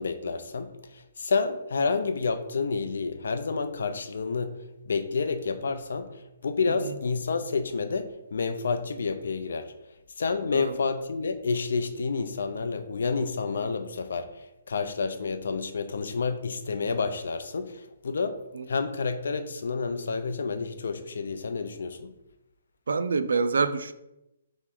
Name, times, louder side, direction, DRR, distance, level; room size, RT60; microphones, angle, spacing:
voice 1, 0.0-4.6 4.9-6.1 6.4-9.7 10.2-18.4 18.7-22.1, left 4 dB, 70° left, 0.4 m, -29 dB
voice 2, 22.9-23.9, right 4 dB, 85° right, 0.3 m, -26 dB
4.2 x 3.0 x 3.8 m
hypercardioid pair, 175°, 0 cm